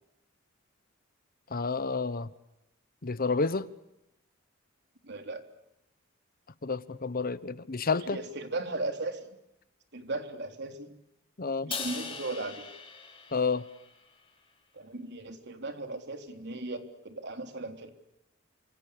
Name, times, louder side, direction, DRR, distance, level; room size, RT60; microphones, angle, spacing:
voice 1, 1.5-2.3 3.0-3.7 6.6-8.2 11.4-11.7 13.3-13.6, left 4 dB, 45° left, 1.1 m, -30 dB
voice 2, 5.0-5.4 8.0-9.3 9.9-10.9 11.6-12.7 14.7-17.9, right 2 dB, 55° right, 3.7 m, -37 dB
Crash cymbal, 11.7-14.1, left 5 dB, 25° left, 6.7 m, -40 dB
29.0 x 27.0 x 6.8 m
head